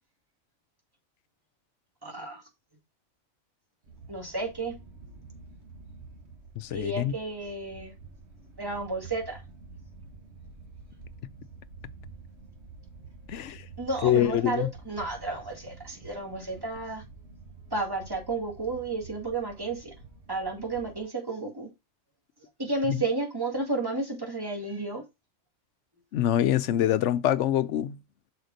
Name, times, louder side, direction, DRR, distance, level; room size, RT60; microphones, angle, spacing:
voice 1, 2.0-2.4 4.1-4.7 6.7-7.9 8.6-9.4 13.8-17.0 17.7-19.9 20.3-21.7 22.6-25.0, right 2 dB, 20° right, 2.0 m, -32 dB
sound 1, 3.8-21.0, right 4 dB, 60° right, 1.8 m, -49 dB
voice 2, 6.6-7.1 13.3-13.6 14.0-14.7 26.1-28.0, left 11 dB, 75° left, 0.9 m, -25 dB
6.5 x 4.9 x 4.0 m
omnidirectional pair, 1.3 m